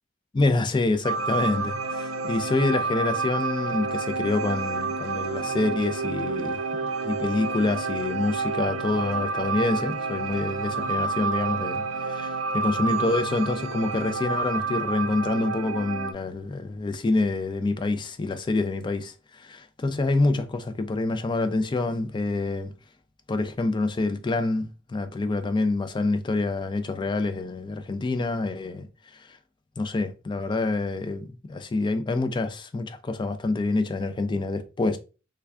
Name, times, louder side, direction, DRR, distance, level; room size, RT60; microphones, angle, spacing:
voice 1, 0.3-6.6 7.0-22.7 23.3-28.9 29.1-29.4 29.8-35.0, left 2 dB, 25° left, 0.3 m, -27 dB
sound 1, 1.0-16.1, right 4 dB, 80° right, 0.4 m, -29 dB
3.3 x 2.3 x 3.4 m
head